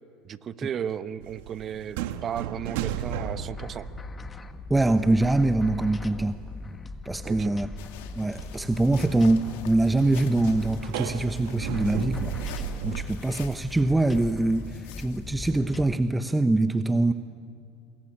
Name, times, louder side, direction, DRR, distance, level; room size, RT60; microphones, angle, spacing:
voice 1, 0.2-3.9 7.2-7.5, right 8 dB, 40° right, 13 dB, 1.1 m, -34 dB
sound 1, 1.2-5.0 5.3-6.4 6.6-6.7 7.3-13.0, right 10 dB, 75° right, 1.4 m, -35 dB
sound 2, 2.9-15.9, left 3 dB, 25° left, 1.6 m, -39 dB
voice 2, 4.7-6.4 7.0-7.7 8.2-12.3 12.8-17.1, right 2 dB, 10° right, 10 dB, 0.9 m, -24 dB
sound 3, 7.8-15.5, left 11 dB, 80° left, 2.2 m, -48 dB
26.5 x 22.0 x 10.0 m, 2.4 s
hypercardioid pair, 90°, 0 cm